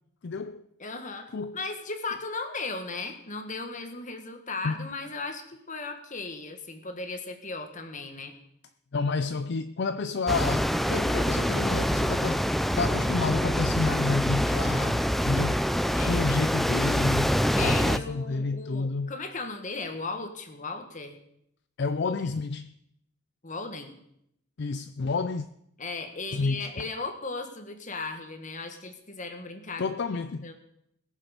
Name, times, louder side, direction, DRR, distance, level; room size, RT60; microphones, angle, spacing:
voice 1, 0.2-0.6 1.3-1.6 4.6-4.9 8.9-12.4 12.8-15.7 16.0-19.1 21.8-22.7 24.6-25.5 26.3-26.9 29.8-30.5, left 4 dB, 60° left, 0.5 m, -30 dB
voice 2, 0.8-8.3 15.9-16.2 17.5-21.2 22.0-22.1 23.4-23.9 25.8-29.8 30.1-30.5, left 3 dB, 40° left, 1.7 m, -36 dB
sound 1, 10.3-18.0, equal, ahead, 0.4 m, -25 dB
21.0 x 7.4 x 5.2 m
head